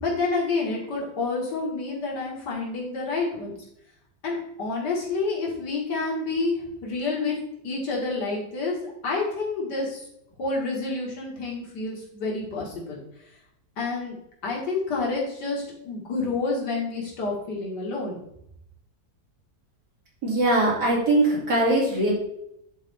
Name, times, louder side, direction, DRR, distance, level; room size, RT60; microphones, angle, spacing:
voice 1, 0.0-3.6 4.2-6.5 6.8-7.3 7.6-8.8 9.0-10.0 10.4-13.0 13.8-14.1 14.4-18.2, left 3 dB, 90° left, -3 dB, 2.4 m, -28 dB
voice 2, 20.2-22.1, right 1 dB, 80° right, -5 dB, 3.4 m, -21 dB
10.5 x 4.2 x 3.5 m, 0.76 s
omnidirectional pair, 1.8 m